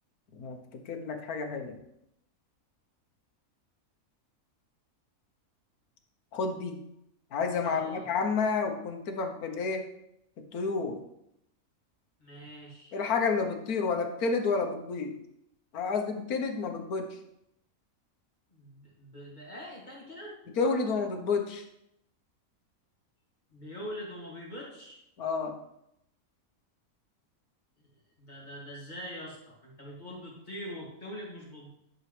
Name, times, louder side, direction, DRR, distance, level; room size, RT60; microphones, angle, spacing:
voice 1, 0.9-1.8 6.3-6.8 7.3-9.8 10.5-11.0 12.9-15.1 15.7-17.1 20.6-21.6 25.2-25.5, left 4 dB, 80° left, 5 dB, 1.5 m, -30 dB
voice 2, 7.6-8.1 12.2-12.9 18.5-20.4 23.5-25.0 27.8-27.9 28.2-31.7, equal, 30° left, -4 dB, 2.6 m, -43 dB
11.0 x 6.2 x 3.3 m, 0.80 s
omnidirectional pair, 1.6 m